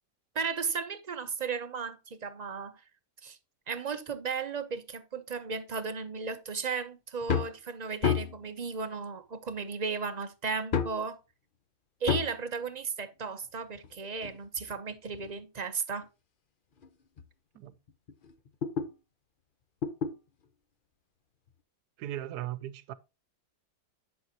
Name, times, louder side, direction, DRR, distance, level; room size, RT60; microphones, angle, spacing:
voice 1, 0.3-2.7 3.2-3.4 3.7-11.2 12.0-16.1, right 5 dB, 40° right, 0.6 m, -35 dB
sound 1, 7.2-7.6 8.0-8.5 9.5-9.6 10.7-11.1 12.1-12.4 13.8-15.4 16.0-16.1 16.8-16.9 17.2-17.3 17.7-18.9 19.8-20.2 21.5-21.6, left 7 dB, 45° left, 0.6 m, -31 dB
voice 2, 22.0-22.9, right 13 dB, 75° right, 1.2 m, -37 dB
10.5 x 6.0 x 2.8 m
omnidirectional pair, 1.8 m